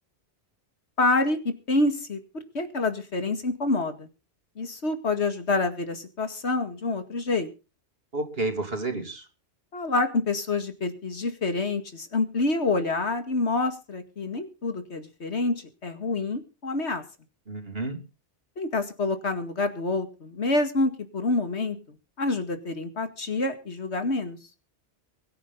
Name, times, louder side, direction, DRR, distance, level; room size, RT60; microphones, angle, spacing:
voice 1, 1.0-2.2 2.5-4.1 4.6-7.5 9.7-15.6 15.8-17.0 18.6-24.4, left 3 dB, 75° left, 8 dB, 2.4 m, -27 dB
voice 2, 8.1-9.2 17.5-18.0, right 2 dB, 60° right, 6 dB, 3.1 m, -30 dB
23.0 x 9.9 x 3.9 m, 0.33 s
omnidirectional pair, 1.1 m